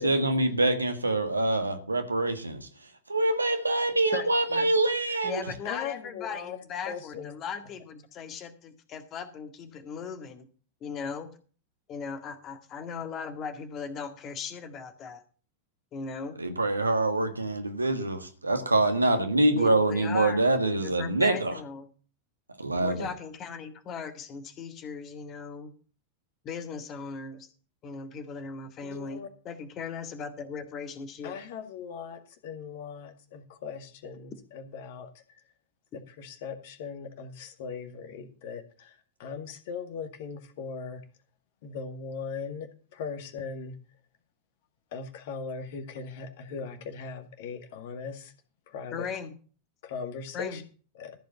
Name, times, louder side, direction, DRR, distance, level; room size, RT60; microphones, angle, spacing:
voice 1, 0.0-2.7 3.1-5.4 16.4-21.6 22.6-23.1, right 2 dB, 80° right, 6 dB, 1.7 m, -25 dB
voice 2, 4.1-4.7 5.2-10.5 10.8-11.3 11.9-15.2 15.9-16.4 19.5-20.4 20.8-21.9 22.8-25.7 26.4-27.5 27.8-31.4 48.9-49.4 50.3-50.6, left 6 dB, 30° left, 9 dB, 1.8 m, -38 dB
voice 3, 5.7-6.6 6.9-7.3 28.8-29.3 31.2-35.1 36.2-38.9 39.2-41.0 41.6-42.7 42.9-43.7 44.9-48.3 48.7-49.1 49.8-50.6 51.0-51.1, left 6 dB, 50° left, 8 dB, 1.9 m, -39 dB
14.5 x 5.2 x 8.1 m, 0.40 s
figure-of-eight pair, 90°, 0 cm